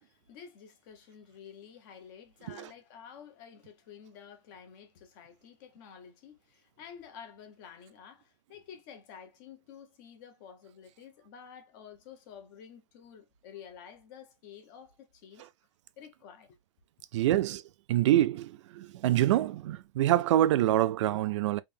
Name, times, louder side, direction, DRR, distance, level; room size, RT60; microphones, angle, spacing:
voice 1, 0.0-15.5 16.0-16.6, left 8 dB, 40° left, 1.0 m, -51 dB
voice 2, 17.1-17.6 17.9-21.6, right 13 dB, 70° right, 0.4 m, -26 dB
3.5 x 2.8 x 3.4 m
supercardioid pair, 170°, 16 cm